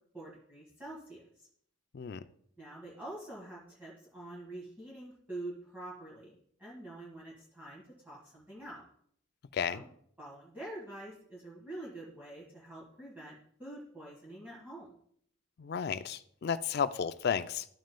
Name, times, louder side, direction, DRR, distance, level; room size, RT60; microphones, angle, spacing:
voice 1, 0.1-1.5 2.6-8.8 9.7-9.9 10.2-14.9, right 1 dB, 10° right, -7 dB, 1.6 m, -46 dB
voice 2, 9.5-9.8 15.6-17.7, left 7 dB, 50° left, 13 dB, 0.3 m, -33 dB
12.5 x 6.2 x 2.2 m, 0.66 s
head